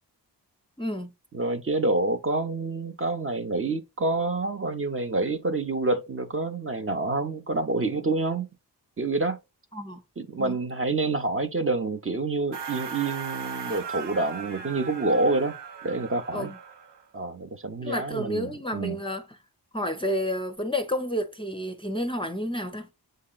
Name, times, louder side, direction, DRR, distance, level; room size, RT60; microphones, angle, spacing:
voice 1, 0.8-1.1 9.7-10.0 10.4-10.6 16.3-16.6 17.8-19.4 19.7-22.9, equal, 15° left, 0.6 m, -30 dB
voice 2, 1.3-8.5 9.0-9.4 10.2-15.5 15.8-16.5 17.1-19.0, right 2 dB, 30° right, 0.6 m, -27 dB
sound 1, 12.5-17.0, right 6 dB, 75° right, 0.9 m, -38 dB
7.5 x 2.8 x 2.3 m
cardioid pair, 60°, 42 cm